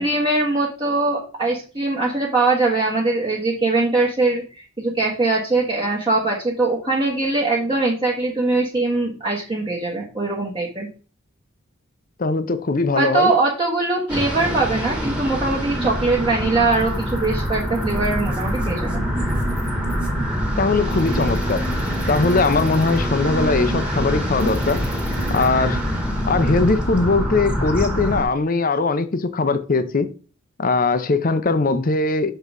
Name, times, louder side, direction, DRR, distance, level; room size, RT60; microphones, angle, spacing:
voice 1, 0.0-10.9 12.9-19.0, right 3 dB, 25° right, 1.2 m, -21 dB
voice 2, 12.2-13.3 20.6-21.6 22.1-24.8 25.3-25.8 26.3-30.1 30.6-32.3, left 3 dB, 40° left, 0.6 m, -20 dB
sound 1, 14.1-28.2, equal, 5° right, 1.4 m, -24 dB
6.7 x 3.8 x 4.8 m
head